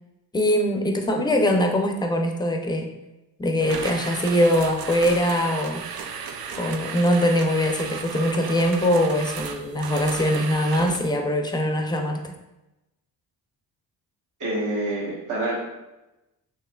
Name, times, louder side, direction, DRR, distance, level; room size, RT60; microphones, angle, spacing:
voice 1, 0.3-2.9 3.4-5.8 6.6-12.3, equal, 10° left, 3 dB, 0.5 m, -22 dB
sound 1, 3.6-11.2, right 6 dB, 75° right, 0.6 m, -34 dB
voice 2, 14.4-15.6, right 1 dB, 50° right, -6 dB, 1.3 m, -27 dB
6.0 x 3.0 x 2.3 m, 0.99 s
cardioid pair, 105°, 37 cm